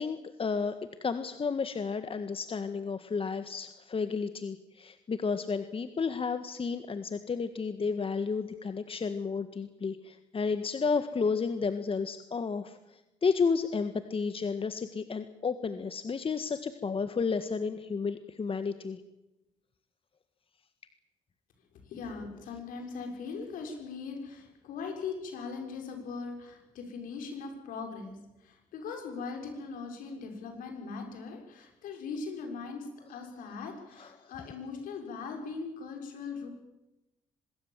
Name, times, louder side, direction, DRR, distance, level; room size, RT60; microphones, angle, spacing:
voice 1, 0.0-19.0 34.0-34.3, left 5 dB, 40° left, 10 dB, 1.7 m, -32 dB
voice 2, 21.8-36.5, left 4 dB, 70° left, 3 dB, 6.5 m, -40 dB
25.0 x 21.0 x 7.6 m, 0.99 s
hypercardioid pair, 50°, 15 cm